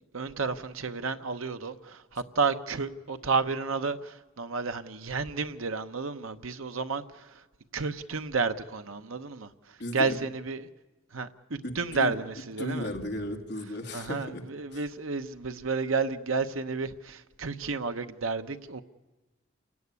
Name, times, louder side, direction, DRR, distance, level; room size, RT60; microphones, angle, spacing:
voice 1, 0.1-7.4 7.7-10.7 11.1-12.9 13.9-18.8, right 4 dB, 80° right, 1.0 m, -31 dB
voice 2, 9.8-10.2 11.6-12.1 12.6-14.4 14.7-14.8, left 1 dB, 50° left, 2.3 m, -35 dB
28.5 x 17.0 x 9.6 m
head